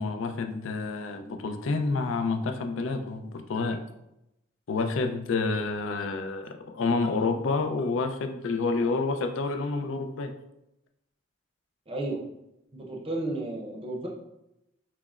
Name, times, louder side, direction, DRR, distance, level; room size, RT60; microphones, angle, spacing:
voice 1, 0.0-3.8 4.7-10.3, left 3 dB, 75° left, 5 dB, 0.4 m, -29 dB
voice 2, 11.9-12.2 12.7-14.1, right 2 dB, 30° right, -1 dB, 0.6 m, -33 dB
5.8 x 2.0 x 2.3 m, 0.86 s
head